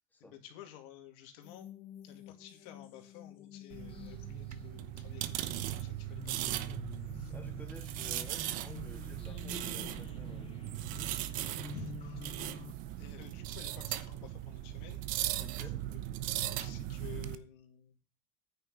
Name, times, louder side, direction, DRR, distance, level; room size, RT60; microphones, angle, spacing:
voice 1, 0.2-1.7 2.0-6.8 7.1-7.3 11.7-12.2 13.0-15.0 16.4-17.9, left 10 dB, 80° left, 5 dB, 2.5 m, -52 dB
sound 1, 1.4-12.7, left 8 dB, 40° left, 0.9 m, -49 dB
sound 2, 3.7-17.4, right 14 dB, 65° right, 0.9 m, -38 dB
voice 2, 7.3-10.5 10.9-11.1 15.4-15.9, left 2 dB, 10° left, 2 dB, 3.0 m, -53 dB
9.7 x 5.7 x 6.4 m, 0.34 s
cardioid pair, 125°, 15 cm